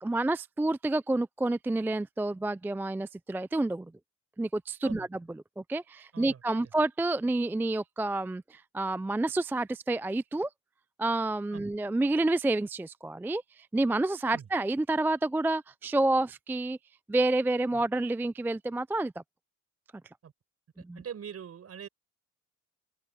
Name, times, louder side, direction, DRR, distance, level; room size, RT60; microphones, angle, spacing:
voice 1, 0.0-3.9 4.4-5.2 5.6-10.5 11.0-16.8 17.1-19.1 20.8-21.0, right 2 dB, 5° right, 0.3 m, -29 dB
voice 2, 6.1-6.6 11.5-11.7 14.3-14.5 17.7-17.8 20.2-20.3 20.9-21.9, right 8 dB, 55° right, 5.8 m, -43 dB
open air
cardioid pair, 90°, 30 cm